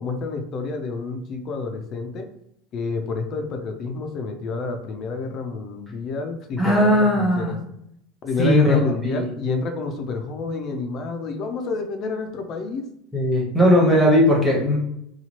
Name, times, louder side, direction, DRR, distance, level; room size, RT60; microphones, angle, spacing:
voice 1, 0.0-2.2 2.7-7.6 8.2-12.8, left 4 dB, 40° left, 4 dB, 0.4 m, -29 dB
voice 2, 6.6-7.6 8.4-9.3 13.1-14.8, equal, ahead, -4 dB, 1.0 m, -18 dB
2.9 x 2.3 x 2.9 m, 0.76 s
supercardioid pair, 145°, 0 cm